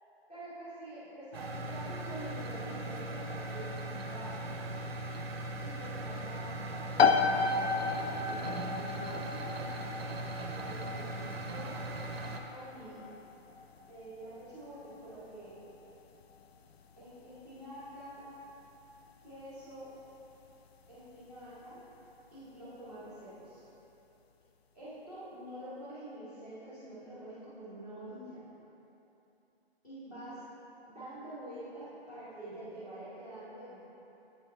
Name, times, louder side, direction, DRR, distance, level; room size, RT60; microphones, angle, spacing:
voice 1, 0.3-4.4 5.6-9.5 10.5-11.8 12.5-13.0 13.9-15.6 17.0-18.3 19.2-19.9 20.9-21.8 22.3-23.6 24.7-28.4 29.8-30.4 30.9-33.7, right 1 dB, 10° left, -14 dB, 1.1 m, -46 dB
sound 1, 1.3-12.4, right 1 dB, 70° right, 0.7 m, -39 dB
sound 2, 7.0-21.5, left 5 dB, 75° left, 0.5 m, -35 dB
7.7 x 3.6 x 4.1 m, 3.0 s
hypercardioid pair, 170°, 32 cm